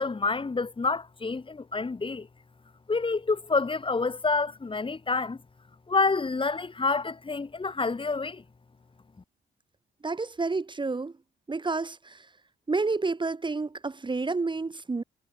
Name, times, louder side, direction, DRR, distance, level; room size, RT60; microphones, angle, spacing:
voice 1, 0.0-2.3 2.9-5.4 5.9-8.4, left 4 dB, 25° left, 3.5 m, -28 dB
voice 2, 10.0-11.1 11.5-12.3 12.7-15.0, right 3 dB, 25° right, 2.5 m, -29 dB
cardioid pair, 90°, 20 cm